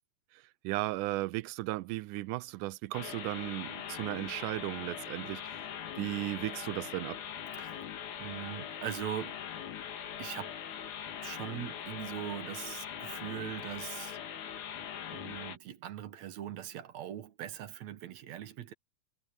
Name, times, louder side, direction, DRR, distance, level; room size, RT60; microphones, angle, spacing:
voice 1, 0.6-5.6 6.0-7.3, right 19 dB, 85° right, 2.1 m, -35 dB
sound 1, 2.9-15.6, left 9 dB, 75° left, 3.2 m, -42 dB
voice 2, 7.5-7.9 8.2-9.5 10.2-10.6 11.2-14.2 15.1-18.7, right 11 dB, 65° right, 2.3 m, -41 dB
omnidirectional pair, 3.6 m